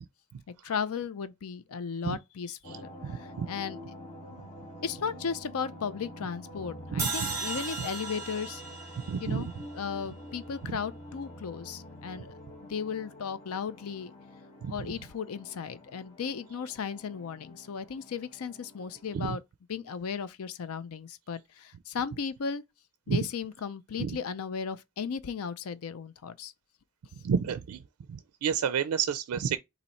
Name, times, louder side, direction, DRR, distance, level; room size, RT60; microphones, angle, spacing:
voice 1, 0.6-3.8 4.8-8.6 9.2-9.5 9.7-12.3 12.6-14.1 14.7-19.4 19.7-22.6 23.1-26.5, left 6 dB, 85° left, 0.5 m, -35 dB
sound 1, 2.6-19.3, left 1 dB, 30° left, 1.2 m, -47 dB
voice 2, 2.7-3.5 6.9-7.3 9.1-9.4 10.7-10.8 14.6-14.7 19.1-19.4 23.1-23.2 24.0-24.2 27.2-27.8 28.1-29.6, right 7 dB, 90° right, 0.4 m, -30 dB
sound 2, 7.0-10.2, right 3 dB, 15° right, 1.7 m, -36 dB
4.1 x 2.8 x 4.3 m
head